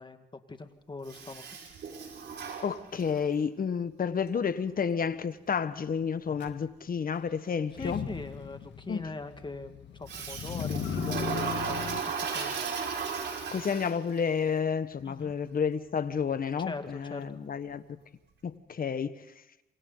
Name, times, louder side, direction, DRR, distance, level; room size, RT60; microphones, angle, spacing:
voice 1, 0.0-1.5 7.7-12.5 15.0-15.3 16.6-17.3, left 3 dB, 25° left, 2.0 m, -42 dB
Toilet flush, 1.1-3.3 10.1-14.2, right 6 dB, 75° right, 5.4 m, -35 dB
voice 2, 2.6-8.0 8.9-9.1 13.5-17.8 18.4-19.2, left 6 dB, 50° left, 1.4 m, -30 dB
Motor vehicle (road), 6.4-6.5 7.7-12.0, left 8 dB, 75° left, 1.7 m, -37 dB
27.5 x 25.0 x 4.0 m
cardioid pair, 80°, 19 cm